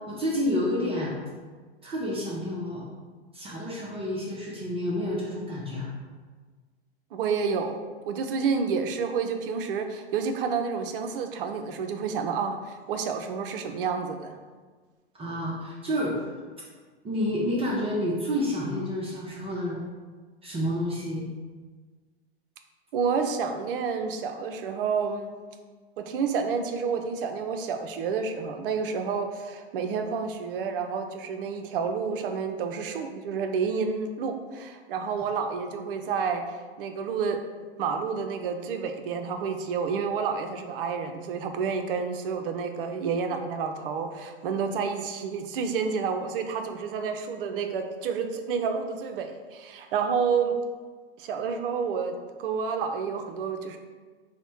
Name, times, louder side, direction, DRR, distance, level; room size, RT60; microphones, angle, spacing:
voice 1, 0.1-1.1 1.8-2.8 3.3-5.9 15.1-16.2 17.0-19.8 20.4-21.3, left 1 dB, 20° right, -5 dB, 0.6 m, -29 dB
voice 2, 7.1-7.8 8.1-14.4 22.9-25.3 26.0-36.4 36.8-37.4 37.8-50.6 51.2-52.1 52.4-53.8, right 5 dB, 60° right, 6 dB, 0.6 m, -29 dB
4.1 x 2.1 x 4.4 m, 1.4 s
hypercardioid pair, 110°, 32 cm